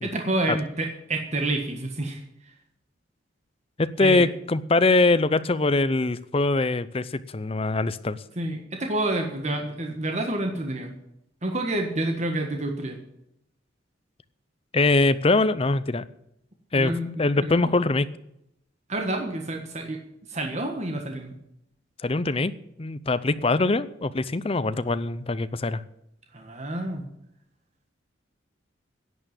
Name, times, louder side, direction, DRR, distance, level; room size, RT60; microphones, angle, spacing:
voice 1, 0.0-2.2 4.0-4.3 8.4-11.0 11.4-13.0 16.7-17.1 17.4-17.7 18.9-20.0 20.3-21.4 26.3-27.0, right 2 dB, 40° right, 3 dB, 1.5 m, -28 dB
voice 2, 3.8-8.2 14.7-16.0 16.7-18.1 22.0-22.5 22.8-25.8, left 3 dB, 30° left, 14 dB, 0.6 m, -23 dB
11.0 x 9.0 x 8.9 m, 0.79 s
head